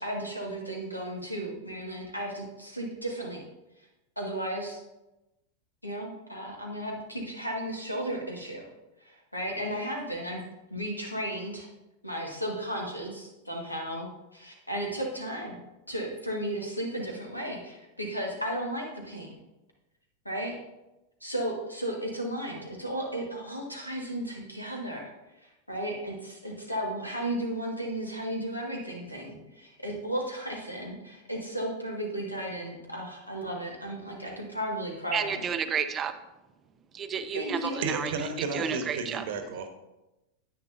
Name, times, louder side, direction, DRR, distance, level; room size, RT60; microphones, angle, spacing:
voice 1, 0.0-3.4 4.2-4.8 5.8-8.6 9.0-10.4 10.7-11.7 12.0-15.6 15.9-19.3 20.3-20.6 21.2-25.1 25.4-35.5 37.3-37.8, right 1 dB, 85° left, 0 dB, 1.7 m, -34 dB
voice 2, 35.1-36.1 36.9-38.1 38.5-39.2, right 7 dB, 25° right, 10 dB, 0.6 m, -31 dB
voice 3, 37.8-39.7, right 4 dB, 55° right, 7 dB, 1.1 m, -32 dB
10.0 x 8.8 x 2.7 m, 0.98 s
figure-of-eight pair, 90°, 0 cm